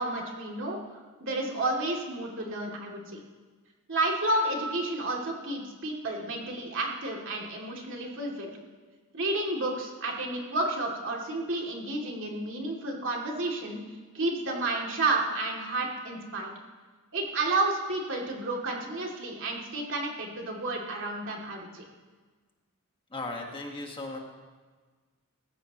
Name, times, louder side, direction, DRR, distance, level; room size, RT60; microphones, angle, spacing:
voice 1, 0.0-3.2 3.9-8.5 9.1-13.8 14.1-16.5 17.1-21.8, right 2 dB, 60° right, -1 dB, 2.7 m, -31 dB
voice 2, 23.1-24.2, left 2 dB, 25° left, 1 dB, 1.6 m, -36 dB
19.5 x 15.5 x 3.0 m, 1.4 s
head